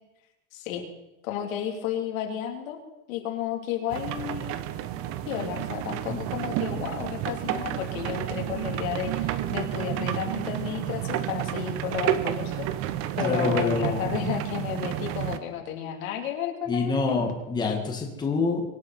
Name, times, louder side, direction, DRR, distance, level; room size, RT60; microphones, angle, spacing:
voice 1, 0.5-0.8 1.2-2.8 3.1-4.6 5.3-12.7 13.2-17.2, left 9 dB, 80° left, 3 dB, 3.4 m, -32 dB
sound 1, 3.9-15.4, right 12 dB, 35° right, 0.8 m, -31 dB
voice 2, 13.2-14.1 16.7-18.6, left 4 dB, 10° left, 1 dB, 1.9 m, -26 dB
24.0 x 9.0 x 5.9 m, 0.94 s
supercardioid pair, 170°, 41 cm